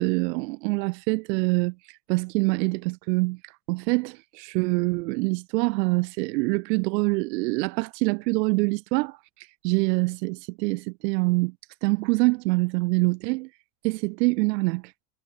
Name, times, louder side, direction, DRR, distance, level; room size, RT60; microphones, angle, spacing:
voice 1, 0.0-11.5 11.8-13.5 13.8-14.9, right 26 dB, 85° right, 1.0 m, -25 dB
supercardioid pair, 120°, 48 cm